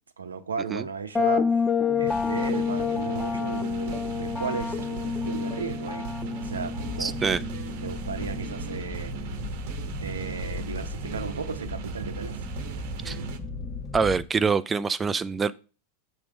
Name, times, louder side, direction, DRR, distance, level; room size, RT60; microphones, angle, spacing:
voice 1, 0.2-1.7 2.0-6.1 6.4-7.4 7.8-9.4 10.0-12.4, right 5 dB, 85° right, 0.7 m, -35 dB
sound 1, 1.2-8.8, left 5 dB, 15° left, 0.6 m, -29 dB
sound 2, 1.9-13.4, right 9 dB, 60° right, 0.9 m, -38 dB
sound 3, 6.4-14.2, left 3 dB, 35° left, 1.0 m, -37 dB
voice 2, 7.0-7.4 13.0-13.2 13.9-15.5, right 5 dB, 20° right, 0.3 m, -25 dB
6.2 x 3.5 x 6.0 m
hypercardioid pair, 95°, 0 cm